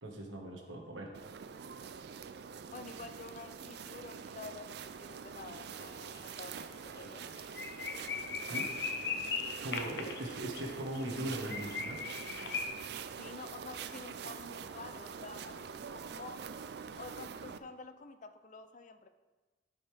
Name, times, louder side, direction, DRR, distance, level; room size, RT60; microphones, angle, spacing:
voice 1, 0.0-1.1 8.4-8.7 9.6-12.0, right 1 dB, 85° right, 1 dB, 1.5 m, -40 dB
voice 2, 0.6-1.2 2.7-7.5 9.7-10.3 13.2-16.5 17.0-19.1, left 3 dB, 40° left, 10 dB, 0.4 m, -49 dB
sound 1, 1.1-17.6, right 6 dB, 60° right, 0.4 m, -45 dB
sound 2, 5.8-6.2 6.5-6.6 7.0-7.1 7.4-12.7, left 5 dB, 60° left, 0.8 m, -39 dB
13.0 x 5.4 x 3.4 m, 1.3 s
head